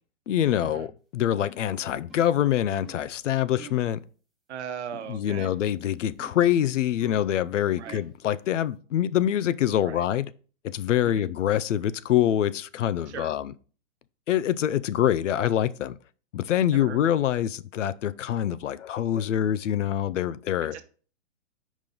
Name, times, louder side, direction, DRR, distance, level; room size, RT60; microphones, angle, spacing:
voice 1, 0.3-0.9 1.1-4.0 5.1-10.3 10.6-13.5 14.3-15.9 16.3-20.7, left 11 dB, 75° left, 0.6 m, -25 dB
sound 1, 1.4-1.7 2.1-2.4 2.8-3.1 3.6-3.9 5.3-5.7 6.2-6.5 7.0-7.3 7.9-8.2, equal, ahead, 0.6 m, -47 dB
voice 2, 4.5-5.5 7.7-8.0 9.8-10.0 11.0-11.3 13.1-13.3 16.7-17.0 20.6-20.8, right 8 dB, 60° right, 1.0 m, -38 dB
5.1 x 3.8 x 5.5 m
hypercardioid pair, 145°, 37 cm